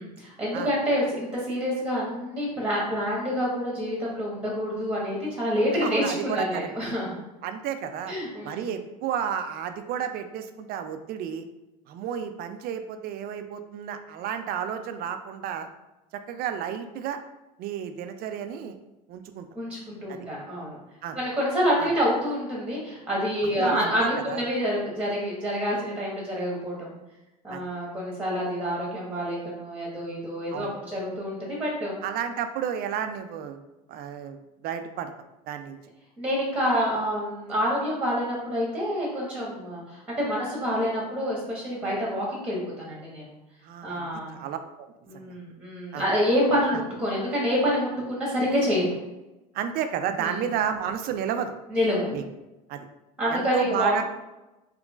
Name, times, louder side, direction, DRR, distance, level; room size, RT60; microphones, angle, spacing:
voice 1, 0.0-7.2 8.1-8.6 19.5-20.8 21.1-26.9 27.4-31.9 36.2-43.3 43.8-44.4 45.1-49.0 50.2-50.4 51.7-52.1 53.2-54.0, equal, 5° right, -4 dB, 1.3 m, -27 dB
voice 2, 5.8-6.7 7.4-8.1 8.4-11.4 11.9-15.7 16.3-17.2 17.6-18.8 19.1-19.5 20.1-20.3 21.0-21.2 21.8-21.9 23.6-24.4 27.5-27.7 30.5-30.8 32.0-33.6 33.9-35.1 35.5-35.8 43.6-44.9 45.1-45.3 45.9-46.0 46.7-46.8 49.5-51.5 52.1-52.2 52.7-52.9 53.3-54.0, right 8 dB, 50° right, 8 dB, 0.4 m, -32 dB
3.6 x 3.0 x 2.4 m, 0.99 s
hypercardioid pair, 80°, 20 cm